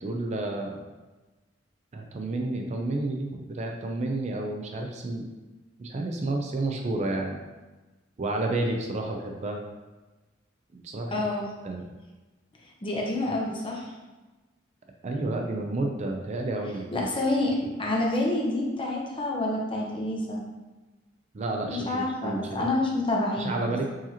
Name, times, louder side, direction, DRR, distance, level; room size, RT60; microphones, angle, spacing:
voice 1, 0.0-0.8 1.9-5.3 5.8-7.4 8.2-9.6 10.7-11.2 11.6-11.8 15.0-16.8 21.3-22.7 23.4-23.9, right 2 dB, 35° right, 2 dB, 0.4 m, -30 dB
voice 2, 11.1-11.5 12.6-13.9 16.9-20.4 21.7-23.9, left 2 dB, 25° left, -2 dB, 0.7 m, -28 dB
4.7 x 2.8 x 2.8 m, 1.2 s
head